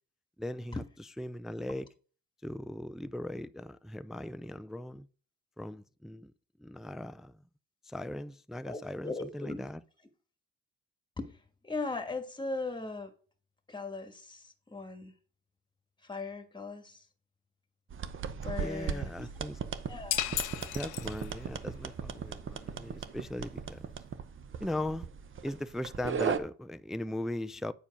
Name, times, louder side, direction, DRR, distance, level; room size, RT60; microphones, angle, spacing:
voice 1, 0.4-0.8 1.2-1.9 2.4-5.1 5.6-6.3 6.6-7.4 7.8-9.8 18.6-19.6 20.7-23.9 24.6-25.1 25.4-27.7, left 1 dB, ahead, 0.3 m, -39 dB
voice 2, 8.6-9.6 11.2-11.4 11.6-13.1 13.7-15.1 16.0-17.0 18.4-19.3 19.9-20.3, left 3 dB, 15° left, 1.4 m, -38 dB
sound 1, 17.9-26.4, right 7 dB, 40° right, 0.8 m, -37 dB
sound 2, 20.1-21.6, left 13 dB, 85° left, 0.7 m, -34 dB
8.7 x 4.6 x 5.2 m
cardioid pair, 90°, 30 cm